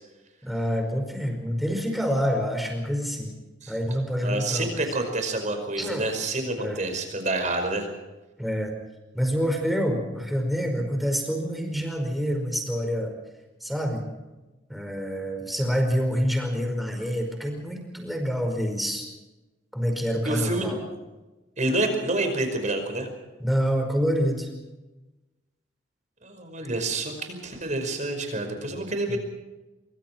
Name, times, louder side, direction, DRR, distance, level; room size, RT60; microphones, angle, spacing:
voice 1, 0.4-3.4 3.7-4.8 5.8-6.1 6.6-6.8 8.4-8.7 9.1-13.1 13.6-14.1 14.7-19.1 19.7-20.8 23.4-24.5 29.1-29.2, equal, ahead, 3 dB, 5.1 m, -27 dB
voice 2, 4.2-7.9 20.3-20.7 21.6-23.1 26.2-29.2, right 2 dB, 40° right, 6 dB, 5.3 m, -28 dB
24.5 x 24.5 x 4.6 m, 1.1 s
head